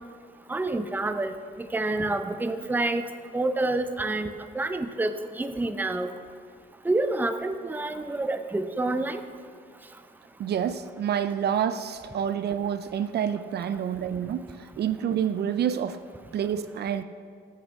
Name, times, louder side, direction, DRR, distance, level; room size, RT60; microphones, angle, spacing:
voice 1, 0.5-3.0 3.3-6.1 6.8-9.2, right 2 dB, 10° right, 9 dB, 0.6 m, -28 dB
voice 2, 10.4-16.0 16.3-17.0, right 9 dB, 55° right, 11 dB, 0.4 m, -28 dB
14.0 x 7.5 x 3.5 m, 2.2 s
cardioid pair, 90°, 20 cm